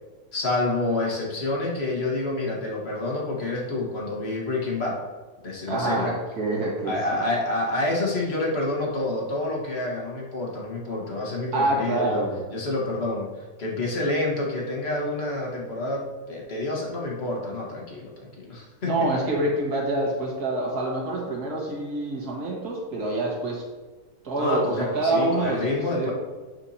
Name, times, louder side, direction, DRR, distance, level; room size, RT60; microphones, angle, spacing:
voice 1, 0.3-5.0 5.4-6.1 6.8-12.2 12.5-18.9 24.4-26.1, left 2 dB, 45° left, -2 dB, 1.5 m, -28 dB
voice 2, 5.7-7.0 11.5-12.4 18.8-23.6 24.2-26.1, right 2 dB, 80° right, -3 dB, 2.0 m, -26 dB
8.8 x 4.5 x 2.8 m, 1.3 s
omnidirectional pair, 1.6 m